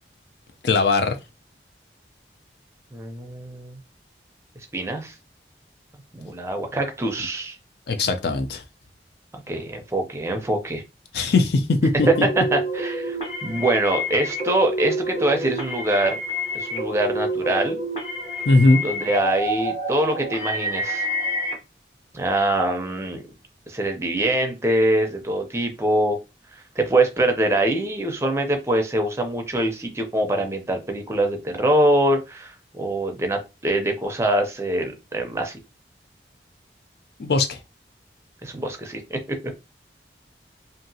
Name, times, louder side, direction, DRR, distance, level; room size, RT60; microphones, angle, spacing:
voice 1, 0.6-1.2 7.9-8.6 11.1-12.3 18.5-18.8 37.2-37.6, left 3 dB, 65° left, 0.4 m, -19 dB
voice 2, 2.9-3.8 4.7-5.1 6.1-7.6 9.5-10.8 12.4-16.2 16.5-17.8 18.8-21.0 22.1-23.2 23.7-26.2 26.5-35.5 38.4-39.2, right 1 dB, 15° right, 0.4 m, -24 dB
sound 1, 12.0-21.5, equal, 35° left, 0.8 m, -28 dB
2.8 x 2.4 x 2.6 m
head